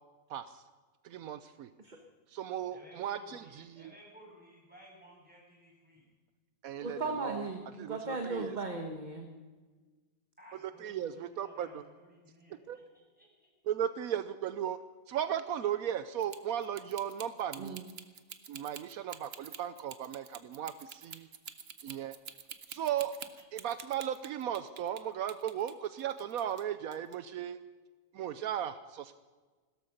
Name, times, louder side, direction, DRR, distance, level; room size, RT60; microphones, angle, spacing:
voice 1, 0.3-0.6 1.0-1.7 2.3-3.9 6.6-7.5 7.8-8.6 10.6-11.8 12.7-12.8 13.7-14.8 15.1-17.8 18.5-21.3 21.8-22.2 22.7-23.1 23.5-27.6 28.1-29.1, right 10 dB, 80° right, 13 dB, 1.1 m, -36 dB
voice 2, 2.7-6.1 10.4-13.5 28.3-28.4, left 1 dB, 5° right, -4 dB, 7.2 m, -57 dB
voice 3, 6.8-9.3 17.6-17.9, right 3 dB, 30° right, 4 dB, 1.5 m, -37 dB
sound 1, 16.2-25.0 25.3-26.6 26.9-27.1, right 7 dB, 50° right, 1.1 m, -47 dB
16.5 x 13.0 x 6.6 m, 1.4 s
omnidirectional pair, 1.5 m